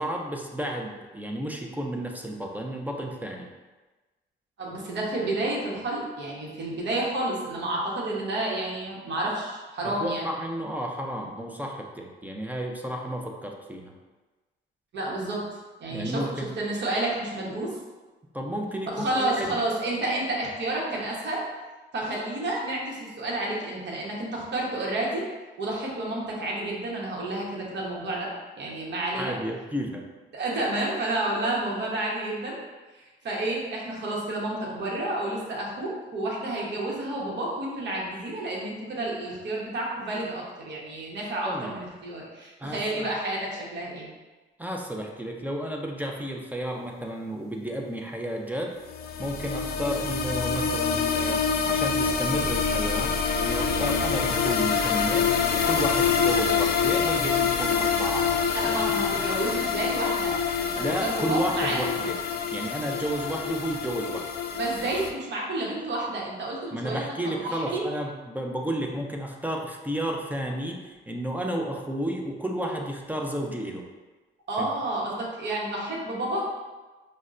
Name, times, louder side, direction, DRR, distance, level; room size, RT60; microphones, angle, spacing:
voice 1, 0.0-3.5 10.0-13.9 15.9-16.5 18.3-19.5 29.1-30.0 41.4-41.7 42.6-43.1 44.6-48.7 49.2-58.3 58.6-58.8 60.8-62.2 62.5-64.3 66.7-73.8 74.6-74.7, right 1 dB, 10° right, 1 dB, 0.4 m, -32 dB
voice 2, 4.6-10.3 14.9-15.4 15.8-16.2 16.6-17.8 18.9-21.4 21.9-25.3 25.6-28.3 28.6-29.3 30.3-32.6 32.9-44.1 58.5-60.3 60.6-61.8 64.5-67.9 74.5-76.5, right 2 dB, 60° right, -3 dB, 1.0 m, -30 dB
sound 1, 48.9-65.1, left 6 dB, 55° left, 0.4 m, -26 dB
5.1 x 2.2 x 2.5 m, 1.2 s
cardioid pair, 90°, 20 cm